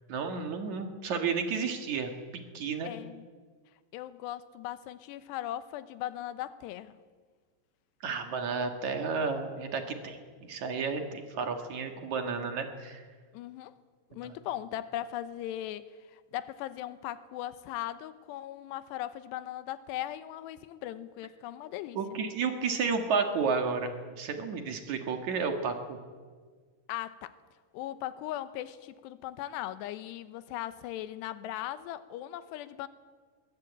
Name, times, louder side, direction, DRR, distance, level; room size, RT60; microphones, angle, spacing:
voice 1, 0.1-2.9 8.0-13.0 14.2-14.3 22.0-26.0, right 5 dB, 55° right, 5 dB, 2.3 m, -32 dB
voice 2, 2.8-3.3 3.9-7.0 13.3-13.7 14.1-22.0 26.9-27.4 27.7-32.9, left 13 dB, 75° left, 13 dB, 2.7 m, -38 dB
21.5 x 19.0 x 8.7 m, 1.6 s
omnidirectional pair, 5.5 m